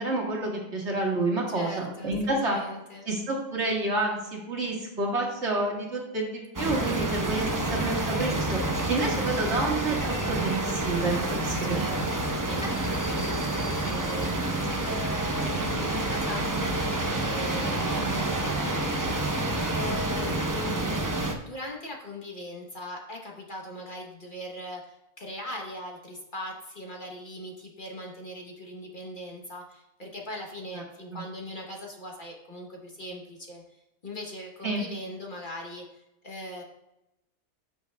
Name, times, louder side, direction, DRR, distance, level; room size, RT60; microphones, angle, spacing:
voice 1, 0.0-2.6 3.1-11.8 30.7-30.8 31.1-31.2 34.6-34.9, right 2 dB, 55° right, -2 dB, 2.1 m, -29 dB
voice 2, 1.5-3.0 11.6-12.2 12.5-14.5 14.9-20.8 21.2-36.6, left 1 dB, 40° left, -1 dB, 1.2 m, -40 dB
sound 1, 6.6-21.3, right 2 dB, 20° right, 0.6 m, -28 dB
14.0 x 6.3 x 2.3 m, 0.88 s
omnidirectional pair, 1.4 m